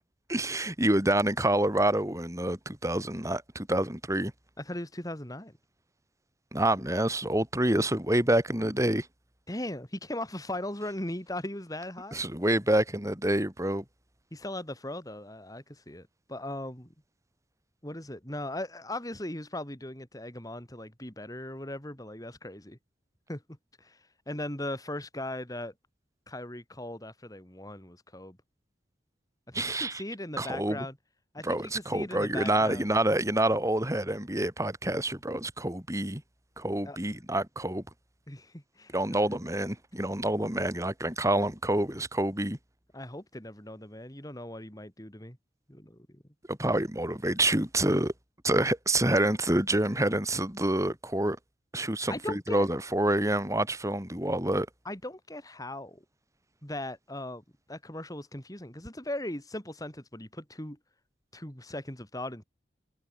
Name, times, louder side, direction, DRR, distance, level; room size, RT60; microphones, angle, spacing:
voice 1, 0.3-4.3 6.5-9.1 12.1-13.8 29.5-30.0 30.4-30.9 31.4-36.2 36.6-37.8 38.9-42.6 46.5-48.1 48.4-51.4 51.7-54.7, right 1 dB, 15° right, 5.1 m, -27 dB
voice 2, 4.6-5.6 9.5-12.2 14.3-16.9 17.8-22.8 23.3-24.0 24.3-25.7 26.3-28.4 29.5-31.0 31.3-32.8 36.9-37.0 38.3-39.4 42.9-45.4 45.7-46.2 52.1-52.7 54.8-56.0 56.6-60.8 61.3-62.4, left 1 dB, 20° left, 4.5 m, -39 dB
head